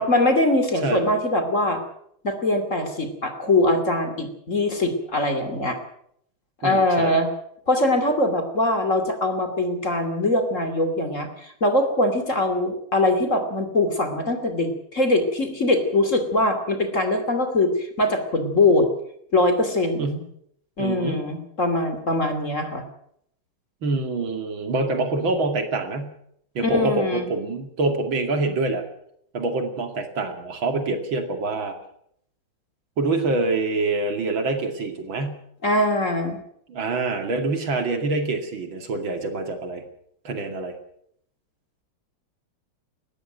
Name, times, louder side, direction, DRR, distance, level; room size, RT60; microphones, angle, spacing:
voice 1, 0.0-1.8 2.2-5.8 6.6-7.3 7.7-18.9 19.3-20.2 20.8-22.8 26.6-27.3 35.6-36.4, left 2 dB, 35° left, 7 dB, 3.1 m, -22 dB
voice 2, 6.6-7.2 20.0-20.2 20.8-21.2 23.8-26.1 26.5-28.8 29.3-31.8 33.0-35.4 36.7-39.8 40.2-40.8, right 3 dB, 65° right, 6 dB, 3.2 m, -26 dB
20.0 x 14.5 x 9.2 m, 0.70 s
omnidirectional pair, 2.3 m